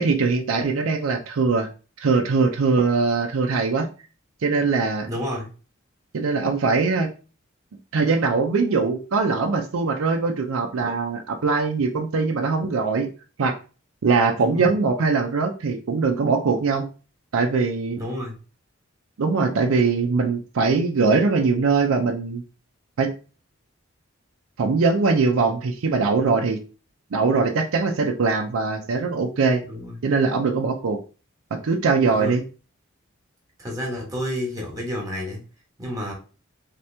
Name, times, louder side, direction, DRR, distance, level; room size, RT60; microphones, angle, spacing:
voice 1, 0.0-1.7 2.0-3.9 4.4-5.1 6.1-7.1 7.9-13.1 13.4-13.5 14.0-16.9 17.3-18.0 19.2-22.4 23.0-23.1 24.6-26.6 27.1-29.6 30.0-31.0 31.5-32.4, right 4 dB, 85° right, 3 dB, 0.5 m, -21 dB
voice 2, 5.0-5.5 14.4-14.7 17.9-18.4 29.7-30.0 32.1-32.3 33.6-35.4 35.8-36.1, equal, 15° right, -1 dB, 1.2 m, -30 dB
3.3 x 2.9 x 3.3 m, 0.35 s
head